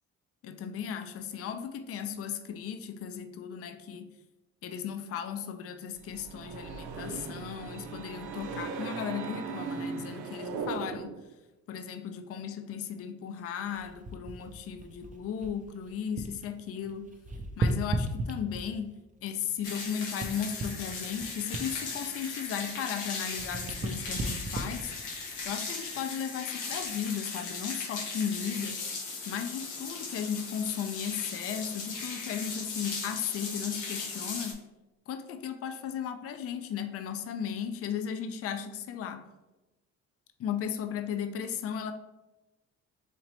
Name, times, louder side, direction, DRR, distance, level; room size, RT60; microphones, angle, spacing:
voice 1, 0.4-4.2 4.6-11.2 11.7-17.2 17.6-28.9 29.3-34.6 35.1-39.3 40.4-41.9, left 8 dB, 50° left, 0.4 m, -36 dB
sound 1, 6.0-11.3, right 4 dB, 80° right, 0.6 m, -38 dB
sound 2, 13.7-16.5 16.8-18.9 19.5-23.0 23.3-26.1 26.7-26.9, right 2 dB, 25° right, 0.5 m, -36 dB
sound 3, 19.6-34.5, left 4 dB, 90° left, 0.8 m, -38 dB
4.3 x 2.9 x 2.9 m
cardioid pair, 90°, 30 cm